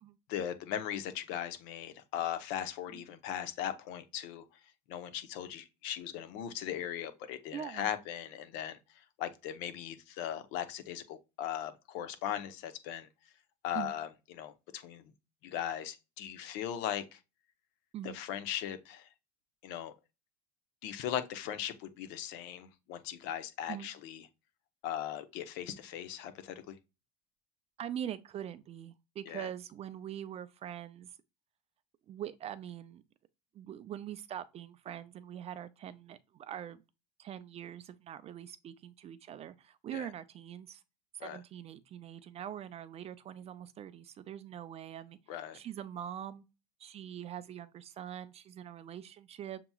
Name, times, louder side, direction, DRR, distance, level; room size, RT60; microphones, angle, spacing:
voice 1, 0.3-4.4 4.9-13.1 13.6-15.0 15.4-17.2 18.0-19.1 19.6-19.9 20.8-24.2 24.8-26.8 29.3-29.5 39.9-40.1 41.2-41.4 45.3-45.6, left 10 dB, 65° left, 0.8 m, -38 dB
voice 2, 7.5-7.9 13.7-13.9 17.9-18.2 23.7-23.9 27.8-31.1 32.1-33.0 33.5-36.8 37.2-40.8 41.1-45.2 45.5-46.4 46.8-49.6, right 10 dB, 30° right, 0.4 m, -43 dB
6.9 x 2.9 x 2.3 m
supercardioid pair, 125°, 20 cm